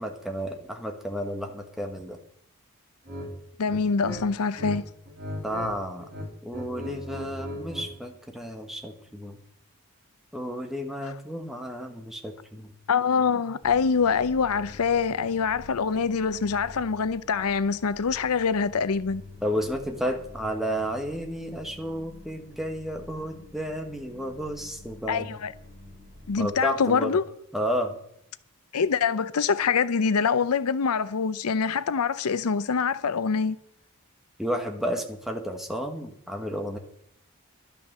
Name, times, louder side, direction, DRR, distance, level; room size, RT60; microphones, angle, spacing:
voice 1, 0.0-2.2 5.4-6.1 6.4-9.4 10.3-12.7 19.4-25.4 26.4-27.2 27.5-28.0 34.4-36.8, equal, ahead, 1.4 m, -32 dB
sound 1, 3.1-3.3 3.6-4.8 5.1-5.7 6.0-7.9, left 1 dB, 45° right, 3.5 m, -36 dB
voice 2, 3.6-4.9 11.0-11.1 12.9-19.2 25.1-25.5 26.3-27.2 28.7-33.6, left 5 dB, 85° left, 0.6 m, -25 dB
sound 2, 13.6-26.4, left 2 dB, 25° right, 6.6 m, -48 dB
12.0 x 9.1 x 6.7 m
head